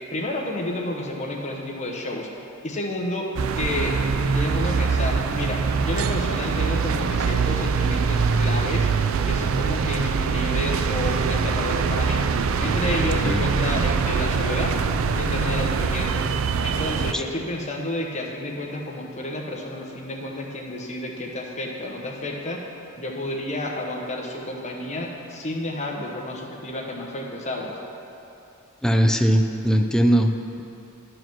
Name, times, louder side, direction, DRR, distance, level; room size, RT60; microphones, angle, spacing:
voice 1, 0.1-2.3 2.6-3.3 3.5-3.9 4.3-8.9 9.3-12.2 12.6-14.8 15.2-16.3 16.6-22.7 23.0-27.8, left 1 dB, 35° left, 0 dB, 1.0 m, -30 dB
sound 1, 3.4-17.1, right 5 dB, 70° right, 0.4 m, -23 dB
voice 2, 28.8-30.6, equal, 5° left, 3 dB, 0.4 m, -20 dB
10.5 x 4.9 x 6.0 m, 2.9 s
head